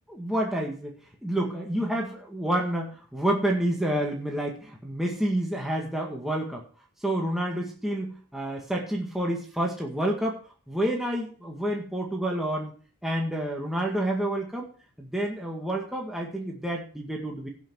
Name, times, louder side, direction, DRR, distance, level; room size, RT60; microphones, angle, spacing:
voice 1, 0.1-6.6 7.0-10.4 10.7-12.7 13.0-17.5, right 1 dB, ahead, -1 dB, 1.9 m, -29 dB
17.5 x 6.1 x 4.7 m, 0.41 s
head